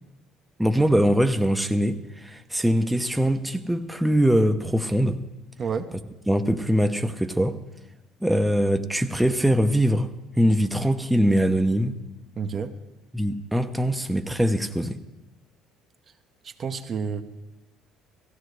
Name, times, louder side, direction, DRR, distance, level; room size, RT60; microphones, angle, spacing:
voice 1, 0.6-5.2 6.3-7.6 8.2-12.0 13.1-15.0, equal, 5° right, 7 dB, 0.7 m, -22 dB
voice 2, 5.6-5.9 12.4-12.8 16.4-17.2, right 6 dB, 45° right, 7 dB, 0.8 m, -30 dB
17.0 x 15.0 x 3.2 m, 0.99 s
hypercardioid pair, 60°, 0 cm